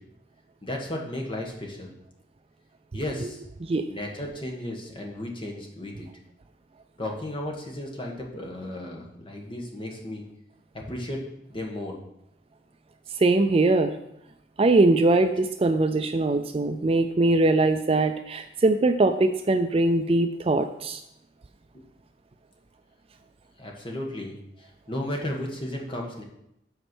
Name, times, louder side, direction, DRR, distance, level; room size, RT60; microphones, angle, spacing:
voice 1, 0.6-1.9 2.9-3.4 3.9-6.1 7.0-10.2 10.7-12.0 23.6-26.2, left 1 dB, 25° left, 0 dB, 1.3 m, -34 dB
voice 2, 13.2-13.9 14.6-21.0, right 2 dB, 30° right, 7 dB, 0.4 m, -22 dB
7.9 x 4.5 x 6.1 m, 0.80 s
head